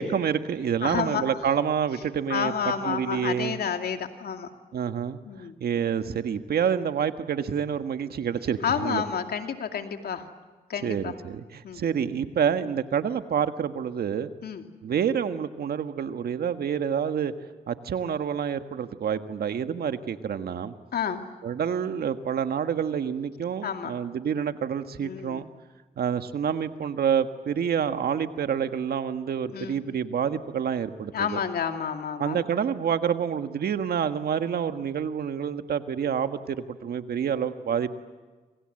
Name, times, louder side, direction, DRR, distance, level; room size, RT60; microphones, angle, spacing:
voice 1, 0.0-2.5 2.8-3.6 4.7-5.2 5.6-9.0 10.8-14.3 14.8-17.3 17.7-20.7 21.4-25.4 26.0-31.4 32.2-37.9, right 8 dB, 75° right, 9 dB, 1.6 m, -28 dB
voice 2, 0.8-1.2 2.3-4.5 5.3-5.5 8.6-10.2 10.7-11.1 11.6-11.8 14.4-14.6 20.9-21.2 23.6-23.9 25.0-25.4 29.5-29.8 31.1-32.4, left 7 dB, 75° left, 5 dB, 2.5 m, -30 dB
28.0 x 27.0 x 7.8 m, 1.3 s
supercardioid pair, 50°, 17 cm